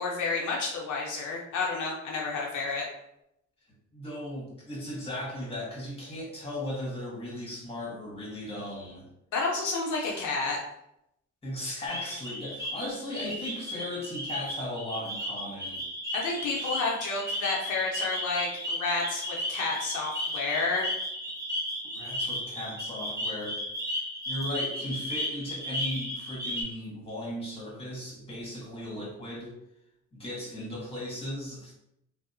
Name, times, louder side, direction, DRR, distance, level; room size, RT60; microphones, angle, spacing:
voice 1, 0.0-2.8 9.3-10.6 16.1-20.9, left 3 dB, 75° left, -2 dB, 0.6 m, -30 dB
voice 2, 3.9-9.1 10.0-10.2 11.4-15.8 16.5-16.7 21.9-23.6 24.3-29.6 30.1-31.7, left 1 dB, 20° left, -5 dB, 1.3 m, -37 dB
sound 1, 11.9-26.6, equal, 10° right, 0.8 m, -35 dB
2.7 x 2.0 x 2.6 m, 0.80 s
cardioid pair, 90°, 30 cm